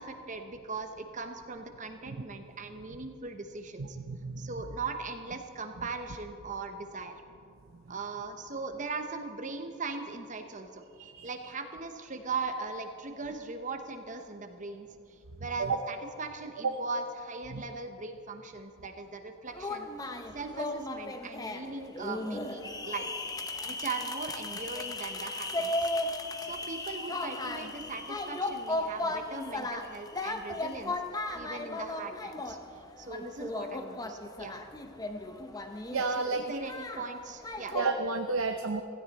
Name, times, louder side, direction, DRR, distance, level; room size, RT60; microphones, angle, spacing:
voice 1, 0.0-4.0 4.4-7.2 7.9-10.8 11.2-23.1 23.3-25.9 26.4-32.6 33.0-34.5 36.2-37.8, right 4 dB, 35° right, 6 dB, 0.9 m, -39 dB
voice 2, 3.8-4.5 11.0-11.3 15.6-15.7 16.6-16.7 17.5-17.6 35.9-36.4 37.7-38.8, right 4 dB, 65° right, 6 dB, 0.7 m, -31 dB
sound 1, 19.5-37.9, left 2 dB, 15° left, 0.7 m, -36 dB
16.5 x 16.0 x 4.2 m, 2.4 s
head